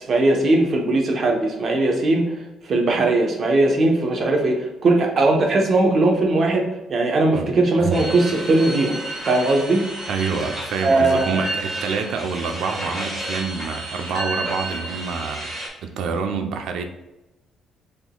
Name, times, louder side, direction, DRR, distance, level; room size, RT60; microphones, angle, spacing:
voice 1, 0.1-2.3 2.6-9.0 9.3-9.8 10.8-11.4, right 2 dB, 40° right, 0.9 m, -19 dB
sound 1, 7.9-15.7, right 1 dB, 15° right, 1.5 m, -31 dB
voice 2, 10.1-15.6 15.8-16.8, right 5 dB, 70° right, 0.6 m, -27 dB
5.8 x 3.9 x 2.3 m
cardioid pair, 145°, 0 cm